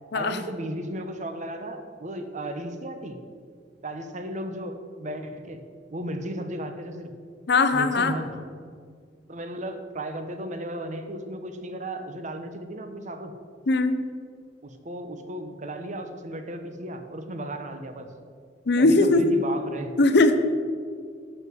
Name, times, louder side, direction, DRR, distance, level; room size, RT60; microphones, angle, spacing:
voice 1, 0.1-3.2 3.8-5.6 5.9-7.1 7.7-8.5 9.3-13.3 14.6-18.1 18.8-19.9, right 1 dB, 40° right, 7 dB, 1.0 m, -35 dB
voice 2, 7.5-8.2 13.7-14.0 18.7-19.2 20.0-20.4, left 2 dB, 60° left, 10 dB, 0.7 m, -19 dB
11.5 x 5.8 x 7.7 m, 2.1 s
head